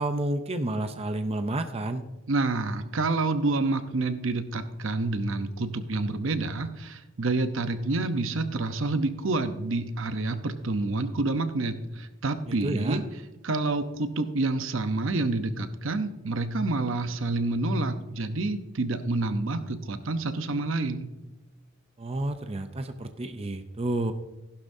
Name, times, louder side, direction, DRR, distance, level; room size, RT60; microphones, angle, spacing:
voice 1, 0.0-2.0 12.5-13.0 22.0-24.1, right 2 dB, 30° right, 8 dB, 0.6 m, -30 dB
voice 2, 2.3-13.0 13.4-21.1, right 2 dB, 70° right, 9 dB, 0.8 m, -28 dB
15.0 x 11.5 x 2.7 m, 1.0 s
head